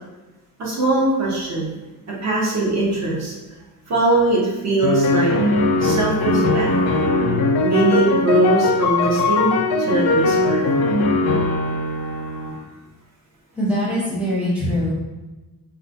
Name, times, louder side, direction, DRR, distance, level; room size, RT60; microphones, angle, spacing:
voice 1, 0.6-1.7 2.2-3.3 3.9-5.3 5.8-6.7 7.6-10.7, right 2 dB, 50° right, -4 dB, 0.7 m, -21 dB
sound 1, 4.8-12.6, left 2 dB, 85° left, 0.5 m, -20 dB
voice 2, 13.5-14.9, equal, 5° right, -7 dB, 0.7 m, -22 dB
3.6 x 2.2 x 2.7 m, 1.1 s
wide cardioid pair, 175°, 36 cm